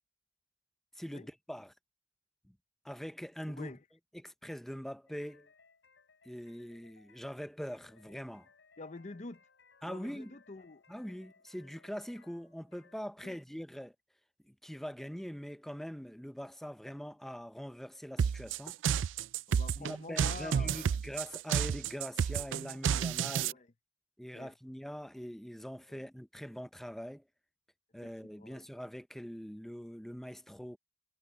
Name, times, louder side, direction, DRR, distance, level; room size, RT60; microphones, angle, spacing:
voice 1, 1.0-1.7 2.5-2.6 2.8-3.7 4.1-5.5 6.2-8.5 9.8-10.4 10.9-13.9 14.4-18.8 19.8-23.6 24.2-27.2 27.9-30.8, equal, ahead, 0.6 m, -43 dB
voice 2, 3.5-3.8 8.8-9.4 9.9-10.8 13.2-13.4 19.5-21.0 23.5-23.7 24.3-24.5 25.9-26.0 28.0-28.7, left 3 dB, 40° left, 0.7 m, -47 dB
sound 1, 5.1-13.0, left 5 dB, 80° left, 4.1 m, -65 dB
sound 2, 18.2-23.5, right 7 dB, 90° right, 0.4 m, -31 dB
head